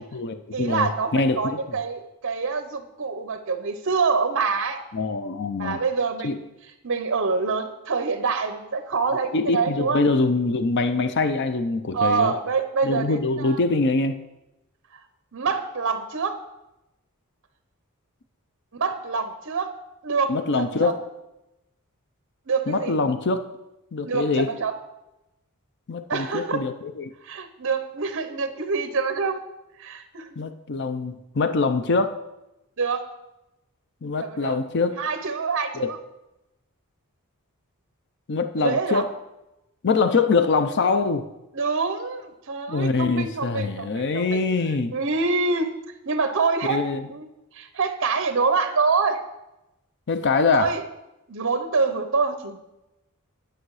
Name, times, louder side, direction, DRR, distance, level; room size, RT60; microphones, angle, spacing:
voice 1, 0.0-1.6 4.9-5.8 6.2-6.4 9.3-12.3 12.8-14.2 20.3-21.0 22.7-23.4 23.9-24.5 25.9-27.1 30.4-32.2 34.0-35.0 35.7-35.9 38.3-39.1 39.8-41.3 42.7-44.9 46.7-47.1 50.1-50.7, left 3 dB, 50° left, 10 dB, 0.5 m, -24 dB
voice 2, 0.5-4.8 5.6-6.3 6.8-10.0 11.9-13.6 15.3-16.4 18.8-19.7 20.0-20.9 22.5-23.0 24.0-24.7 26.1-26.6 27.2-29.4 29.8-30.3 32.8-33.1 34.2-34.6 35.0-36.0 38.6-39.1 41.5-44.4 44.9-45.7 46.0-47.3 47.5-49.2 50.5-50.8 51.3-52.6, right 4 dB, 60° right, 9 dB, 0.9 m, -26 dB
10.5 x 6.4 x 4.8 m, 0.95 s
head